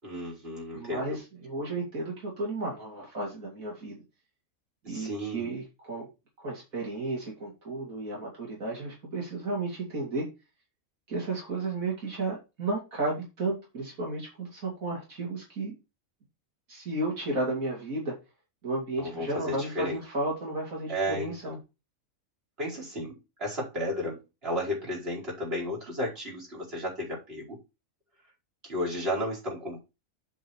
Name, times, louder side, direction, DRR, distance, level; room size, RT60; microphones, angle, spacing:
voice 1, 0.0-1.2 4.8-5.5 19.0-20.0 20.9-21.6 22.6-27.6 28.6-29.8, equal, 45° right, 5.2 m, -33 dB
voice 2, 0.7-4.0 4.8-6.1 6.4-10.3 11.1-15.8 16.7-18.1 18.6-21.6, right 2 dB, 85° right, 3.1 m, -33 dB
7.7 x 5.7 x 4.6 m
omnidirectional pair, 1.4 m